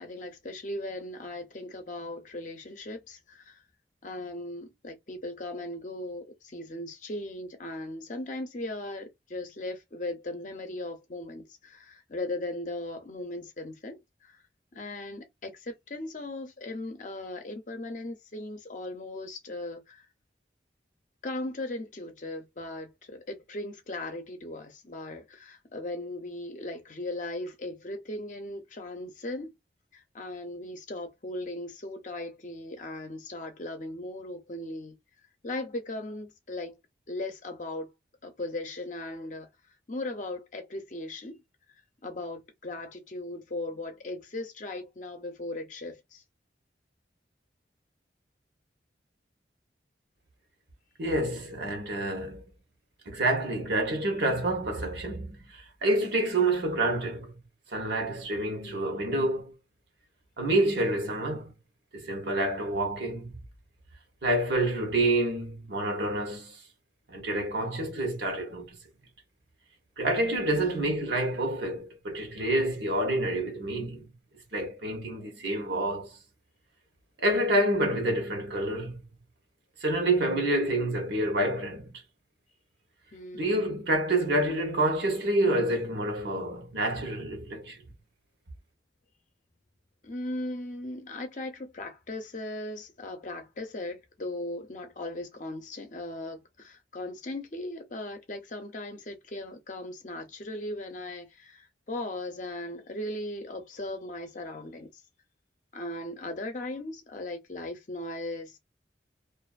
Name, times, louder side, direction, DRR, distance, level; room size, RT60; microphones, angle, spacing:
voice 1, 0.0-3.6 4.0-14.4 14.7-20.1 21.2-29.5 29.9-35.0 35.4-36.8 37.1-37.9 38.2-39.5 39.9-41.4 42.0-46.2 58.6-59.0 70.5-70.9 83.1-83.6 90.0-105.0 105.7-108.6, left 2 dB, 45° left, 0.6 m, -38 dB
voice 2, 51.0-52.4 53.1-57.4 57.7-59.5 60.4-61.5 61.9-63.4 64.2-66.6 67.1-68.8 70.0-74.1 74.5-76.2 77.2-79.0 79.8-82.0 83.3-87.8, right 1 dB, 70° right, 1.0 m, -28 dB
2.5 x 2.4 x 2.4 m
head